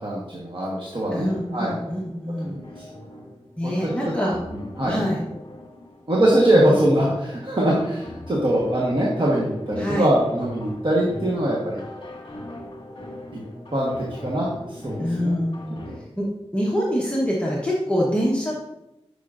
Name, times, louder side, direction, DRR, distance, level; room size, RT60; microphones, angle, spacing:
voice 1, 0.0-1.3 1.5-1.7 2.4-2.8 3.6-3.9 4.5-5.0 6.1-11.8 13.3-13.4 13.7-15.3 15.9-16.0, right 1 dB, 50° right, -5 dB, 1.3 m, -22 dB
sound 1, 1.0-16.0, left 1 dB, 50° left, 1.8 m, -40 dB
voice 2, 1.1-2.6 3.6-4.3 4.9-5.3 6.6-6.7 9.8-10.1 15.0-18.5, equal, 10° left, -5 dB, 1.1 m, -25 dB
9.7 x 5.6 x 2.5 m, 0.93 s
wide cardioid pair, 85°, 11 cm